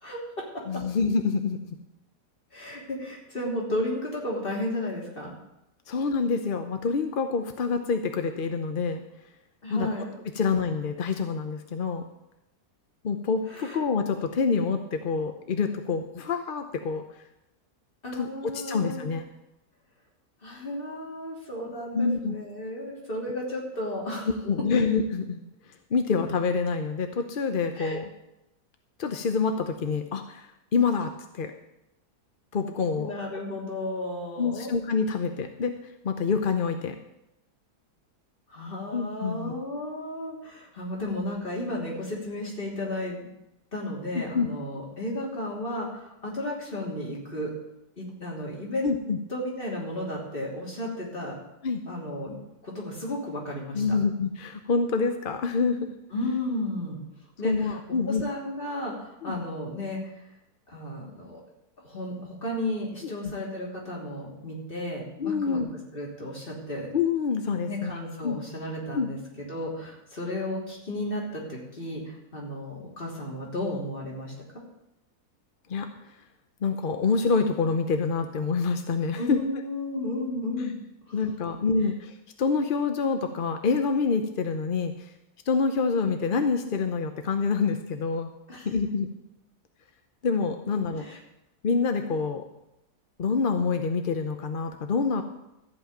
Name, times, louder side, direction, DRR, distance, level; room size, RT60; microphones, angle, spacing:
voice 1, 0.0-0.8 2.5-5.4 9.6-10.1 13.5-13.8 18.0-19.1 20.4-24.3 24.7-24.8 27.8-28.0 32.9-34.7 38.5-43.3 43.7-47.5 48.0-48.9 49.3-51.4 51.9-52.4 52.6-54.0 56.1-57.0 57.4-57.8 58.1-60.2 60.7-61.4 61.8-65.6 65.9-66.9 67.6-74.3 79.2-80.8 81.1-81.2 88.5-88.7 90.9-91.2, left 1 dB, 30° left, -3 dB, 3.4 m, -33 dB
voice 2, 0.7-1.8 5.9-9.0 9.7-9.9 10.4-12.0 13.0-17.0 18.1-18.3 18.5-19.2 21.9-22.3 24.5-25.4 25.9-28.1 29.0-31.5 32.5-33.1 34.4-35.7 36.0-37.0 38.9-39.5 44.1-44.5 48.8-49.2 51.6-51.8 53.7-55.8 57.4-58.2 59.2-59.4 63.0-63.3 65.2-65.7 66.9-67.9 68.2-68.4 68.9-69.1 75.7-75.9 76.6-79.4 81.1-84.9 85.5-88.3 88.6-89.1 90.2-91.2 91.6-92.4 93.2-95.2, left 5 dB, 50° left, 6 dB, 0.7 m, -27 dB
14.0 x 5.5 x 8.9 m, 0.87 s
omnidirectional pair, 1.8 m